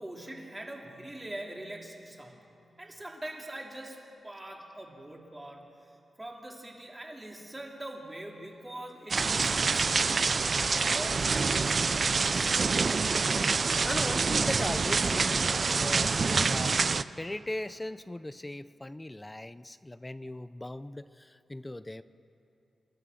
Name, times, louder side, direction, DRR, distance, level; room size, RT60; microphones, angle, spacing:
voice 1, 0.0-2.5 2.8-5.9 6.2-12.6, right 1 dB, 20° right, 0 dB, 3.3 m, -43 dB
sound 1, 9.1-17.0, right 4 dB, 50° right, 0.5 m, -26 dB
voice 2, 13.8-16.7 17.2-22.0, left 1 dB, 15° left, 14 dB, 0.5 m, -38 dB
28.5 x 13.5 x 6.8 m, 2.8 s
cardioid pair, 85°, 0 cm